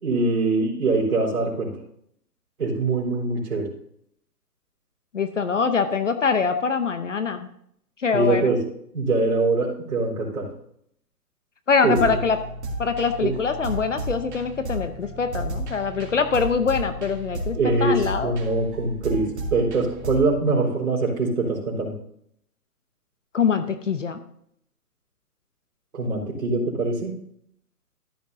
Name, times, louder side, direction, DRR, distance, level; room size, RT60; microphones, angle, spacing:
voice 1, 0.0-1.8 2.6-3.7 8.1-8.6 8.9-10.5 11.8-12.2 13.2-13.3 17.5-21.9 25.9-27.1, right 3 dB, 60° right, -4 dB, 4.2 m, -23 dB
voice 2, 5.1-7.5 8.0-8.5 11.7-12.4 12.8-18.3 23.3-24.2, left 5 dB, 50° left, 9 dB, 0.8 m, -24 dB
sound 1, 11.9-20.3, right 1 dB, 45° right, 2.7 m, -33 dB
14.0 x 9.3 x 2.7 m, 0.70 s
hypercardioid pair, 175°, 47 cm